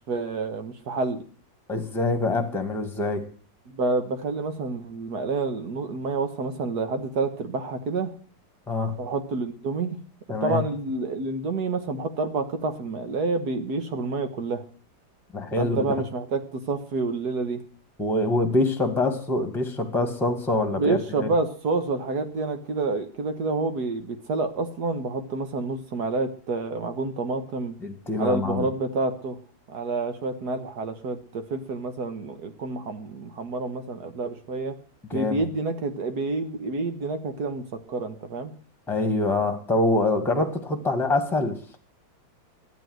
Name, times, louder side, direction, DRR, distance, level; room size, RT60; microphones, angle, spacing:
voice 1, 0.1-1.2 3.7-8.1 9.0-10.0 10.4-14.6 15.6-17.6 20.7-27.7 28.2-29.4 29.7-34.8 35.1-38.5, right 3 dB, 60° right, 9 dB, 1.8 m, -28 dB
voice 2, 1.7-3.2 8.7-8.9 10.3-10.6 15.3-15.9 18.0-21.3 27.8-28.7 35.1-35.4 38.9-41.5, left 2 dB, ahead, 6 dB, 1.5 m, -25 dB
12.0 x 9.6 x 7.8 m, 0.43 s
omnidirectional pair, 2.1 m